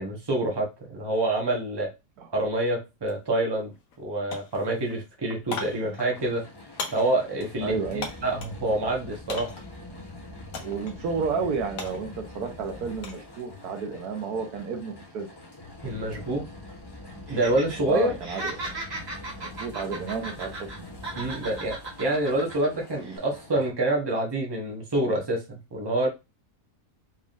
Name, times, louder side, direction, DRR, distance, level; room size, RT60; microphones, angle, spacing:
voice 1, 0.0-1.9 2.3-6.4 6.9-9.5 15.8-16.5 17.3-18.1 21.2-26.1, right 1 dB, 20° right, 0 dB, 1.0 m, -27 dB
sound 1, 3.0-3.2 3.5-4.0 4.3-8.6 9.3-9.8 10.5-11.0 11.3-13.3 13.6-14.0, left 4 dB, 65° left, 1.2 m, -39 dB
sound 2, 6.1-23.7, left 2 dB, 20° left, 0.6 m, -44 dB
voice 2, 7.6-8.1 10.6-12.1 12.3-15.3 17.9-18.7 19.4-20.7, right 5 dB, 75° right, 4 dB, 1.3 m, -31 dB
Laughter, 17.3-17.8 18.1-20.8 21.0-22.7 23.0-23.2, right 2 dB, 40° right, 1.8 m, -36 dB
4.2 x 3.5 x 2.5 m, 0.25 s
omnidirectional pair, 1.7 m